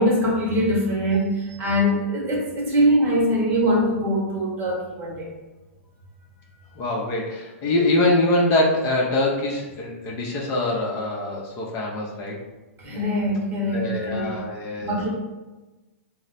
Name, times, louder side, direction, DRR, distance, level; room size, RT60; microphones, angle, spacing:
voice 1, 0.0-5.3 12.8-14.3 14.8-15.1, equal, 25° right, -3 dB, 1.0 m, -22 dB
voice 2, 6.8-12.4 13.7-15.1, left 2 dB, 35° left, -2 dB, 0.7 m, -24 dB
3.1 x 2.1 x 4.1 m, 1.1 s
hypercardioid pair, 125°, 7 cm